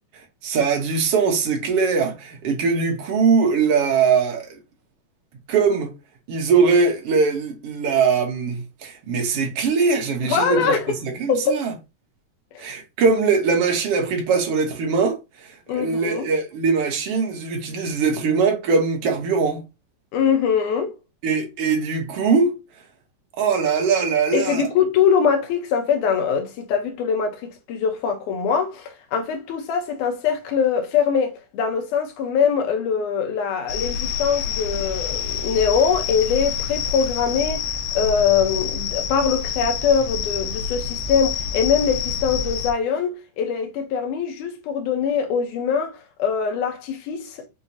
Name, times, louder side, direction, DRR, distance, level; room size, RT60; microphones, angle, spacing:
voice 1, 0.4-4.6 5.5-5.9 6.3-10.7 11.0-11.7 12.6-19.6 21.2-22.6 23.4-24.7, right 5 dB, 80° right, 1.3 m, -21 dB
voice 2, 10.2-10.9 11.3-11.6 12.5-12.6 15.7-16.3 20.1-21.0 24.3-47.5, left 6 dB, 70° left, 2.1 m, -22 dB
sound 1, 33.7-42.7, left 7 dB, 85° left, 2.5 m, -27 dB
6.3 x 2.8 x 2.7 m
omnidirectional pair, 4.3 m